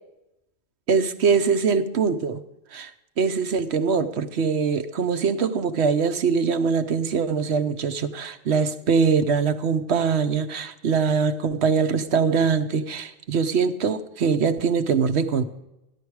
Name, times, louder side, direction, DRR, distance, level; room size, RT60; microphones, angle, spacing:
voice 1, 0.9-2.4 2.7-2.9 3.2-15.4, right 5 dB, 60° right, 10 dB, 1.1 m, -22 dB
14.0 x 11.0 x 4.7 m, 0.91 s
omnidirectional pair, 1.4 m